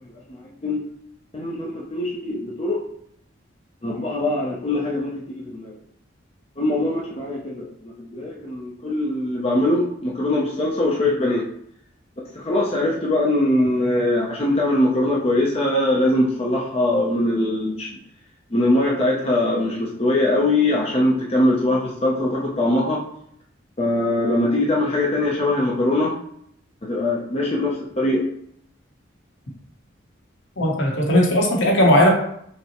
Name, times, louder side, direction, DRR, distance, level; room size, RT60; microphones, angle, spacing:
voice 1, 0.3-0.8 1.3-2.8 3.8-5.7 6.6-11.5 12.3-17.9 18.5-23.0 23.8-26.1 26.8-28.3, left 1 dB, 30° left, -4 dB, 0.5 m, -22 dB
voice 2, 30.6-32.1, left 1 dB, 70° left, -1 dB, 0.9 m, -17 dB
5.4 x 2.1 x 2.9 m, 0.69 s
head